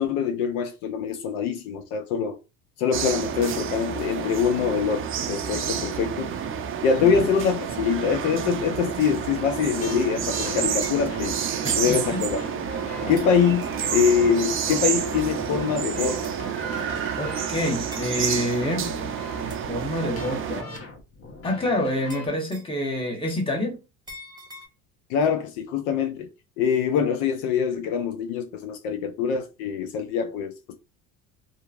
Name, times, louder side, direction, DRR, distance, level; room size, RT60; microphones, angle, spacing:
voice 1, 0.0-2.4 2.8-6.3 6.8-11.3 11.8-12.4 13.1-13.6 13.9-16.3 25.1-26.3 26.6-30.8, left 6 dB, 75° left, 0.6 m, -24 dB
sound 1, 2.9-20.6, right 8 dB, 35° right, 0.4 m, -29 dB
sound 2, 4.8-22.3, left 3 dB, 35° left, 1.0 m, -41 dB
sound 3, 10.8-11.1 12.2-12.3 13.2-13.4 14.7-14.9 16.2-16.6 17.9-18.1 19.5-19.7 22.1-22.8 24.1-24.7, equal, 10° right, 0.9 m, -43 dB
voice 2, 11.6-12.2 13.0-13.2 17.2-18.9 19.7-20.8 21.4-23.8, left 1 dB, 15° left, 1.1 m, -27 dB
2.8 x 2.5 x 2.4 m
supercardioid pair, 85°, 40 cm